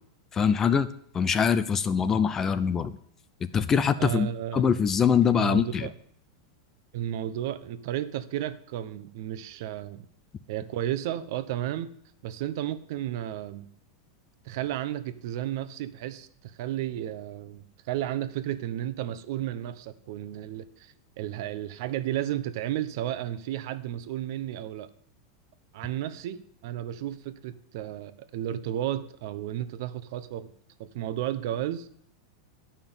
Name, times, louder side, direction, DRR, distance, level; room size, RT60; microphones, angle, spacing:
voice 1, 0.3-0.9 1.1-2.9 3.5-4.3 4.5-5.9, left 7 dB, 15° left, 14 dB, 0.5 m, -23 dB
voice 2, 4.0-4.7 5.2-5.9 6.9-10.1 10.5-11.9 12.2-13.7 14.4-24.9 25.7-30.5 30.8-31.9, right 12 dB, 55° right, 12 dB, 0.9 m, -33 dB
11.0 x 5.8 x 8.9 m, 0.64 s
supercardioid pair, 165°, 2 cm